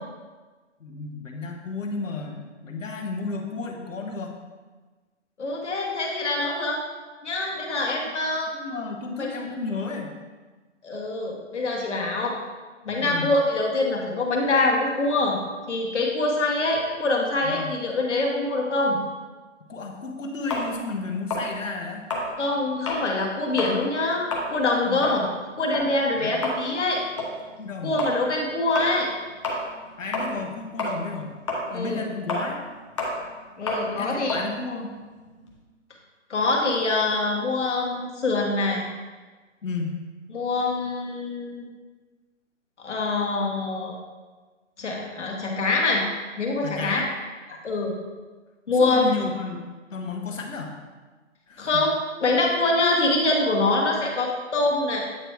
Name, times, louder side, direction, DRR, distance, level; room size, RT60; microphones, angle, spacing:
voice 1, 0.8-4.4 8.5-10.2 13.0-13.3 17.4-17.8 19.7-22.0 24.8-25.0 26.2-26.3 27.6-28.0 30.0-31.3 31.7-32.6 34.0-34.9 39.6-40.0 46.6-47.1 48.7-49.6 49.9-50.8 51.5-51.9, left 4 dB, 80° left, 2 dB, 1.2 m, -32 dB
voice 2, 5.4-6.8 7.2-8.5 9.2-9.3 10.8-12.4 12.8-15.4 15.7-19.0 22.4-25.3 25.6-27.0 27.8-29.1 31.7-32.0 33.6-34.4 36.3-38.8 40.3-41.6 42.8-44.0 44.8-46.0 46.4-47.0 47.6-47.9 48.7-49.1 51.6-52.0 52.2-55.0, left 2 dB, 65° left, -1 dB, 1.6 m, -24 dB
sound 1, 20.5-23.1 23.5-23.8 24.1-30.5 30.8-35.6, left 2 dB, 25° left, 0.8 m, -31 dB
8.8 x 3.1 x 4.6 m, 1.3 s
hypercardioid pair, 160°, 38 cm